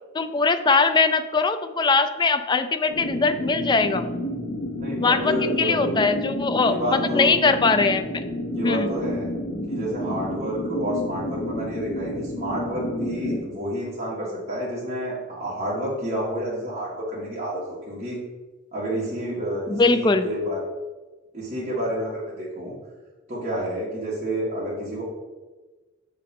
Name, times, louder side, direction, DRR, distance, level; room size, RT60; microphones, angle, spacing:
voice 1, 0.1-4.0 5.0-8.1 8.6-8.9 19.7-20.3, left 4 dB, 20° left, 9 dB, 0.3 m, -21 dB
sound 1, 2.9-13.4, left 1 dB, 70° left, 1.1 m, -30 dB
voice 2, 4.8-6.1 6.6-7.3 8.5-9.3 9.7-18.2 18.7-20.6 21.3-22.7 23.3-25.0, equal, 35° right, -8 dB, 1.9 m, -29 dB
6.6 x 3.7 x 5.4 m, 1.3 s
head